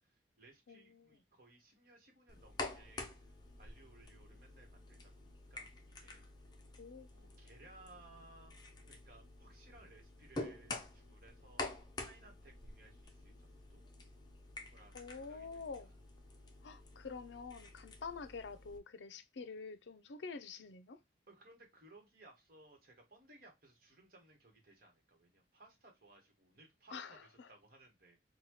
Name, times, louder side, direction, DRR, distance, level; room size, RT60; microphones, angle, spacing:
voice 1, 0.0-6.2 7.1-11.6 12.0-13.9 14.7-15.9 21.3-28.2, right 2 dB, 50° right, 1.3 m, -62 dB
voice 2, 0.7-1.1 6.8-7.1 14.9-15.9 16.6-21.0 26.9-27.5, left 4 dB, 75° left, 0.5 m, -47 dB
sound 1, 2.3-18.8, left 2 dB, 25° left, 0.5 m, -49 dB
4.1 x 2.2 x 3.0 m
head